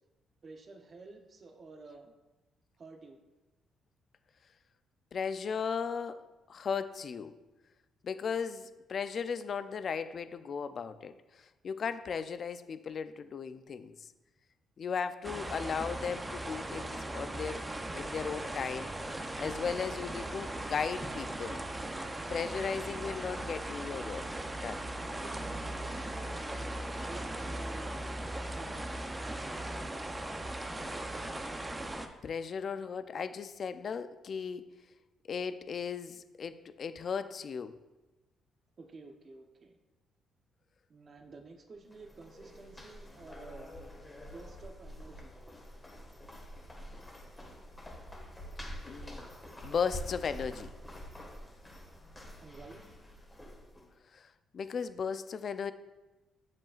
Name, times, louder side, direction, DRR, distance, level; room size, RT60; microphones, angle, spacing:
voice 1, 0.4-2.1 2.8-3.2 25.2-28.0 28.5-28.8 38.8-39.7 40.9-43.7 44.2-45.4 52.4-52.8, right 3 dB, 40° right, 4 dB, 0.9 m, -51 dB
voice 2, 5.1-6.2 6.5-7.3 8.0-14.0 14.8-17.6 17.9-18.9 19.4-21.6 22.3-24.3 24.5-24.8 32.2-34.6 35.3-37.7 48.9-49.3 49.6-50.7 54.1-55.7, left 6 dB, 50° left, 12 dB, 0.4 m, -36 dB
sound 1, 15.2-32.1, right 1 dB, 15° right, 0.7 m, -38 dB
sound 2, 41.8-53.9, equal, 15° left, 1.6 m, -47 dB
7.5 x 7.4 x 2.4 m, 1.1 s
cardioid pair, 90°, 0 cm